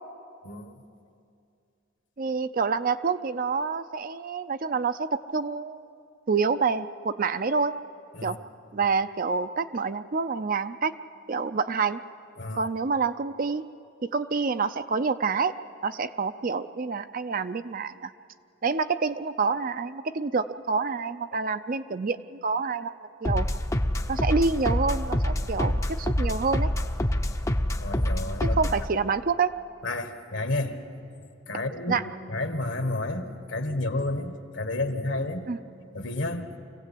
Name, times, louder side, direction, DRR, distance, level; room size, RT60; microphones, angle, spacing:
voice 1, 2.2-5.9 6.3-7.7 8.2-8.4 8.7-10.9 11.3-12.0 12.5-13.6 14.0-15.5 15.8-18.1 18.6-22.9 23.2-23.5 24.1-26.7 28.4-29.5 31.9-32.0 35.5-35.6, right 4 dB, 45° right, 11 dB, 0.5 m, -27 dB
sound 1, 23.2-28.9, left 1 dB, 15° left, 0.6 m, -26 dB
voice 2, 27.8-28.6 29.8-30.7 31.5-32.0 32.3-35.5 35.9-36.6, left 2 dB, 65° left, 7 dB, 1.5 m, -30 dB
24.5 x 16.5 x 8.4 m, 2.5 s
head